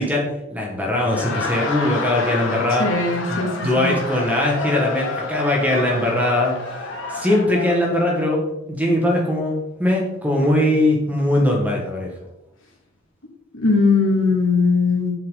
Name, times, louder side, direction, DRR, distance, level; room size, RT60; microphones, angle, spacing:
voice 1, 0.0-2.9 3.3-6.5 7.1-12.1, left 1 dB, 10° right, -1 dB, 1.7 m, -21 dB
Laughter, 0.9-7.8, left 3 dB, 65° left, 1.6 m, -29 dB
voice 2, 2.8-3.9 13.5-15.1, left 4 dB, 85° left, -3 dB, 2.4 m, -19 dB
7.9 x 7.3 x 4.0 m, 0.89 s
head